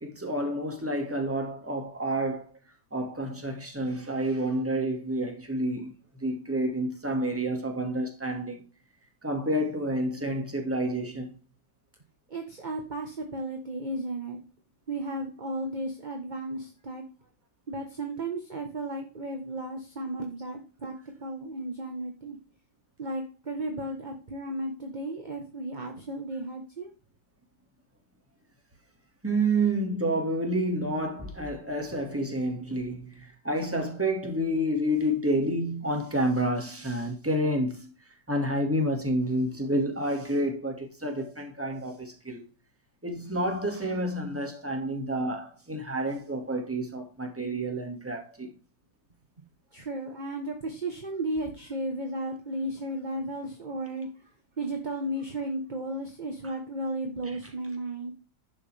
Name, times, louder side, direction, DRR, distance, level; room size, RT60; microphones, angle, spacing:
voice 1, 0.0-2.5 2.9-5.9 6.2-8.6 9.2-11.3 29.2-37.9 38.3-42.4 43.0-48.5, right 1 dB, 5° right, 1.9 m, -29 dB
voice 2, 12.3-14.4 14.9-17.0 17.7-20.9 21.2-22.4 23.0-26.9 49.7-54.1 54.6-58.1, right 1 dB, 25° right, 1.2 m, -34 dB
11.0 x 7.5 x 3.4 m
omnidirectional pair, 2.2 m